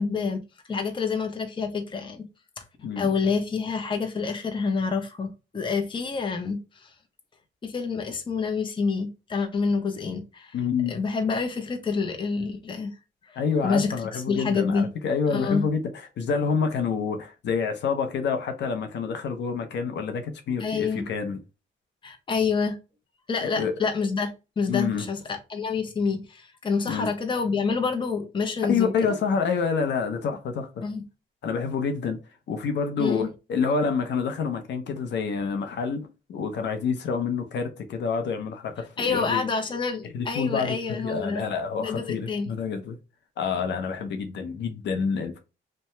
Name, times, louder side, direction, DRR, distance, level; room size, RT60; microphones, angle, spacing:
voice 1, 0.0-2.2 2.6-6.9 7.6-10.5 10.9-12.9 13.2-14.9 15.3-15.7 20.6-21.1 22.0-22.8 23.3-24.3 24.6-29.1 30.8-31.0 33.0-33.3 39.0-41.4 41.8-42.5, left 5 dB, 25° left, 0.6 m, -28 dB
voice 2, 10.5-11.0 13.4-21.4 23.4-23.7 24.7-25.1 26.9-27.1 28.7-30.9 31.4-32.2 32.5-39.4 40.0-43.0 43.4-45.4, left 5 dB, 65° left, 0.6 m, -28 dB
2.8 x 2.2 x 3.2 m
cardioid pair, 90°, 20 cm